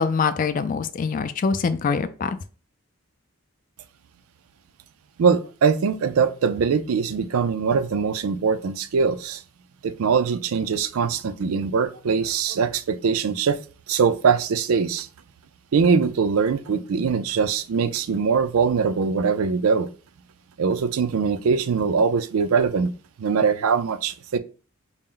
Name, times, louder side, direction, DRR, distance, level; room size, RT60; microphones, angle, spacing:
voice 1, 0.0-2.4, left 5 dB, 40° left, 0.3 m, -24 dB
voice 2, 5.2-9.4 9.8-13.6 13.9-15.1 15.7-19.9 20.6-22.9 23.2-24.4, right 5 dB, 85° right, 0.4 m, -22 dB
4.3 x 2.0 x 3.7 m
head